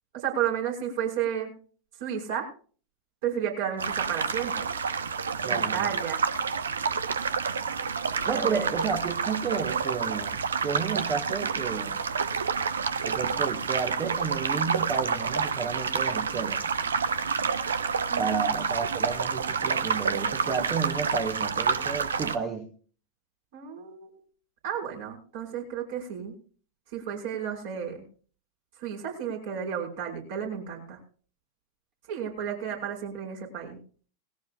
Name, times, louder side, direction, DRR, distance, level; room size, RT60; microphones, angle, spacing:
voice 1, 0.1-1.5 2.0-2.5 3.2-4.7 5.5-6.2 8.3-8.7 18.1-18.5 23.5-24.2 24.6-26.4 26.9-28.0 28.8-31.0 32.1-33.8, right 8 dB, 55° right, 0 dB, 5.8 m, -32 dB
sound 1, 3.8-22.4, right 6 dB, 70° right, 1.0 m, -28 dB
voice 2, 5.4-5.9 8.2-12.0 13.0-16.6 18.2-22.7, right 6 dB, 30° right, 4 dB, 1.8 m, -32 dB
19.5 x 16.5 x 2.5 m, 0.41 s
figure-of-eight pair, 90°, 0 cm